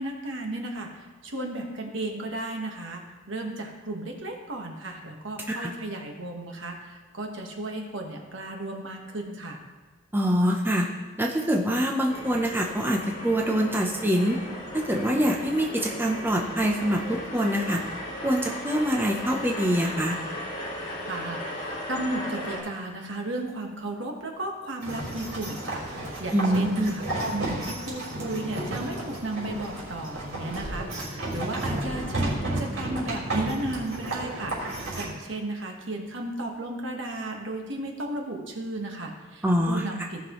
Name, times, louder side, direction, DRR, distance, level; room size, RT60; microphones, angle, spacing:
voice 1, 0.0-3.0 3.3-9.6 21.1-40.2, right 2 dB, 65° right, 2 dB, 1.4 m, -34 dB
voice 2, 10.1-10.9 11.2-14.4 14.7-17.8 18.2-20.2 26.3-26.9 39.4-39.8, equal, 10° right, 0 dB, 0.7 m, -25 dB
sound 1, 12.1-22.6, left 1 dB, 40° left, 2.9 m, -36 dB
sound 2, 24.8-35.1, right 1 dB, 85° right, 3.2 m, -32 dB
17.0 x 5.9 x 3.1 m, 1.3 s
head